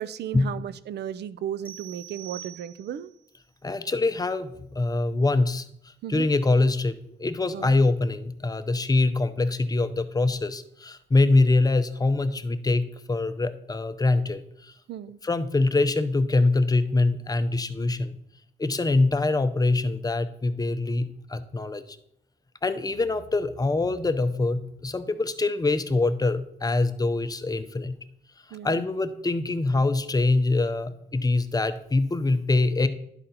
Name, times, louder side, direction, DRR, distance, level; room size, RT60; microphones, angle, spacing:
voice 1, 0.0-3.1 6.0-6.3 7.5-7.7 14.9-15.2 28.5-28.8, right 10 dB, 60° right, 15 dB, 0.5 m, -35 dB
sound 1, 1.6-3.2, right 12 dB, 10° right, 0.8 m, -44 dB
voice 2, 3.6-14.7 15.2-18.2 18.6-22.0 22.6-28.0 28.6-32.9, left 2 dB, 20° left, 10 dB, 0.6 m, -24 dB
11.5 x 4.2 x 4.0 m, 0.73 s
cardioid pair, 90°, 20 cm